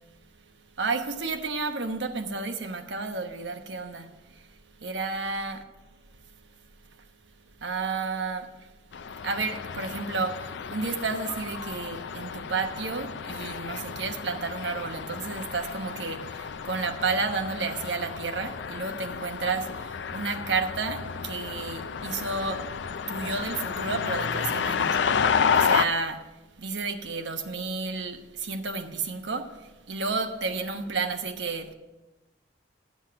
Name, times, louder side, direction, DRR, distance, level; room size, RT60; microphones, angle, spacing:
voice 1, 0.8-4.1 4.8-5.6 7.6-8.5 9.2-22.6 23.1-25.2 25.5-26.2 26.6-29.5 29.9-31.7, right 4 dB, 80° right, 1.1 m, -31 dB
sound 1, 8.9-25.8, left 6 dB, 75° left, 0.5 m, -31 dB
11.5 x 7.3 x 5.8 m
head